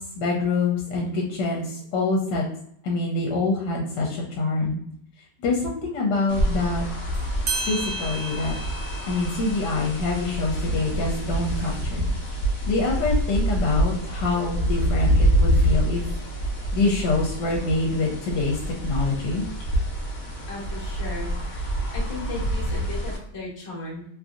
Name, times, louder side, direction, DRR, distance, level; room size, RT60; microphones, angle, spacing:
voice 1, 0.2-2.4 2.8-4.8 5.4-6.8 7.5-8.5 9.1-12.1 12.7-16.0 16.7-19.4, left 3 dB, 80° left, -1 dB, 1.2 m, -25 dB
sound 1, 6.3-23.2, equal, 50° left, 1.0 m, -26 dB
sound 2, 7.1-7.2 7.5-12.6, right 3 dB, 65° right, 0.6 m, -36 dB
voice 2, 20.5-24.1, left 3 dB, 25° left, -5 dB, 0.7 m, -36 dB
2.9 x 2.6 x 2.4 m, 0.68 s
omnidirectional pair, 1.9 m